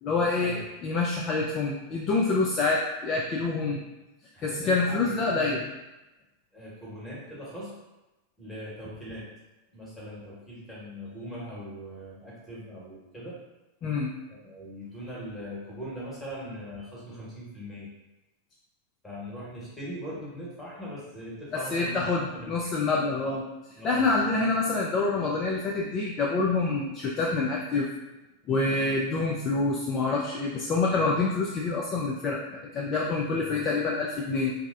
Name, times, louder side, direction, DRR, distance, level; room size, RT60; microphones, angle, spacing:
voice 1, 0.0-3.8 4.4-5.6 13.8-14.1 21.5-23.4 23.8-27.9 28.5-32.4 32.7-34.5, left 3 dB, 30° left, -3 dB, 0.3 m, -26 dB
voice 2, 4.3-5.7 6.5-7.7 8.4-9.3 9.7-13.4 14.3-17.9 19.0-22.7 23.7-24.3 28.5-28.6 33.4-33.6, equal, 10° left, -7 dB, 1.0 m, -41 dB
3.3 x 2.0 x 2.4 m, 1.0 s
figure-of-eight pair, 90°, 0 cm